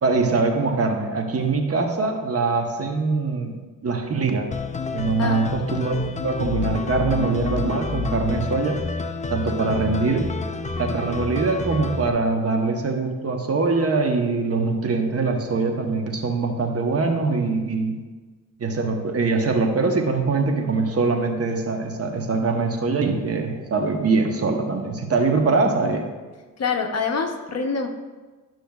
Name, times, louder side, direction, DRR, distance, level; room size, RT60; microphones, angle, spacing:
voice 1, 0.0-3.6 3.8-4.5 4.9-8.8 9.3-10.3 10.7-18.0 18.6-26.1, right 3 dB, 40° right, 3 dB, 1.0 m, -23 dB
sound 1, 4.5-12.1, left 4 dB, 20° left, 0.4 m, -29 dB
voice 2, 26.6-27.9, left 5 dB, 45° left, 4 dB, 0.9 m, -25 dB
12.0 x 6.1 x 2.4 m, 1.3 s
cardioid pair, 95°, 35 cm